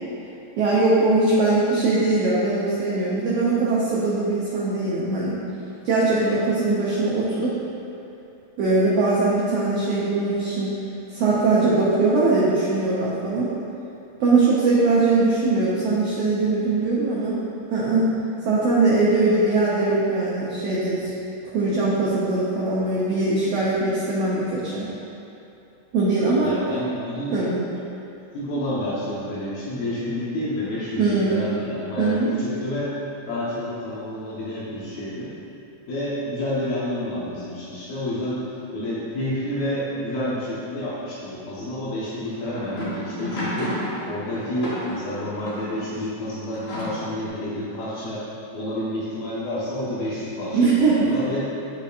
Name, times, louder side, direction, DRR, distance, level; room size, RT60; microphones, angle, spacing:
voice 1, 0.6-5.4 5.8-7.6 8.6-10.8 11.1-13.5 14.2-17.4 17.7-18.2 18.4-21.1 21.5-24.9 25.9-26.5 27.3-27.6 31.0-31.5 32.0-32.3 50.5-51.1, right 3 dB, 85° right, -7 dB, 1.4 m, -21 dB
voice 2, 26.4-27.3 28.3-32.9 33.3-35.3 35.9-38.4 38.7-43.8 44.0-51.5, left 1 dB, 90° left, -10 dB, 3.0 m, -29 dB
sound 1, 42.2-45.8 46.5-47.3, left 1 dB, 60° left, 2.6 m, -32 dB
11.0 x 4.3 x 2.5 m, 2.8 s
omnidirectional pair, 4.0 m